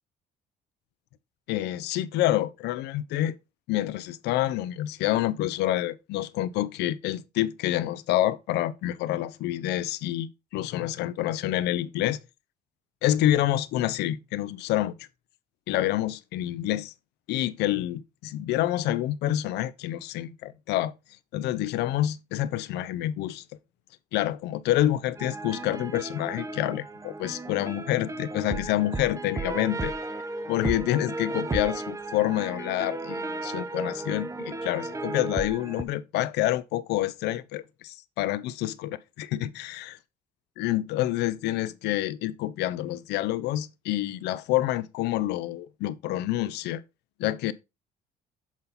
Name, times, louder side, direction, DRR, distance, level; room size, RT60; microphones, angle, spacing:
voice 1, 1.5-3.4 3.7-10.3 10.5-12.2 13.0-15.1 15.7-16.9 17.3-20.9 21.3-23.4 24.1-29.9 30.5-38.9 39.2-40.0 40.6-46.8 47.2-47.5, left 14 dB, 80° left, 0.6 m, -27 dB
sound 1, 25.2-35.8, right 3 dB, 20° right, 0.7 m, -34 dB
7.2 x 4.2 x 4.0 m
cardioid pair, 110°, 17 cm